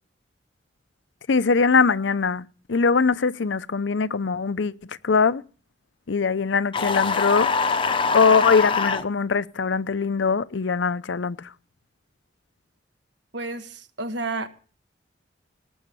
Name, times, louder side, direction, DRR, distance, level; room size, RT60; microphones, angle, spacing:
voice 1, 1.3-5.4 6.1-7.5 8.1-11.5, left 5 dB, 75° left, 0.6 m, -22 dB
sound 1, 6.7-9.0, left 4 dB, 25° left, 0.7 m, -23 dB
voice 2, 13.3-14.5, right 3 dB, 70° right, 1.4 m, -31 dB
18.5 x 7.8 x 7.0 m
head